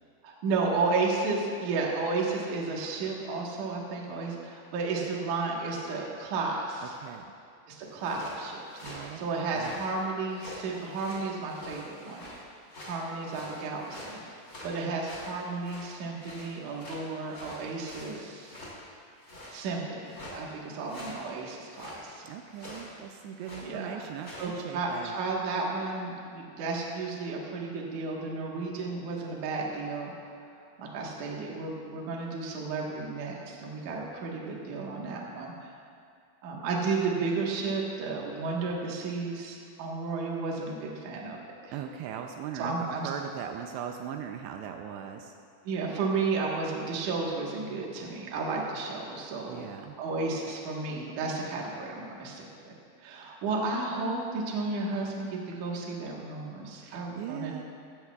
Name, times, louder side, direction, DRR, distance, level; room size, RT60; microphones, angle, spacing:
voice 1, 0.2-7.0 7.7-12.3 12.8-14.2 14.6-18.6 19.5-22.2 23.6-24.0 24.4-30.3 30.8-35.7 36.4-41.7 42.6-43.1 45.7-49.6 50.0-57.6, right 3 dB, 60° right, -2 dB, 2.3 m, -33 dB
voice 2, 6.8-7.3 8.8-9.8 22.2-25.2 41.7-42.8 43.0-45.3 49.5-50.0 53.2-53.4 56.8-57.6, right 8 dB, 85° right, 4 dB, 2.7 m, -39 dB
sound 1, 7.8-9.9 10.3-12.4 12.7-15.9 16.2-18.8 19.2-19.6 20.0-20.4 20.8-21.3 21.7-22.0 22.5-22.9 23.3-23.7 24.2-24.5, left 1 dB, 25° left, 2.2 m, -45 dB
15.0 x 14.5 x 2.4 m, 2.4 s
omnidirectional pair, 5.0 m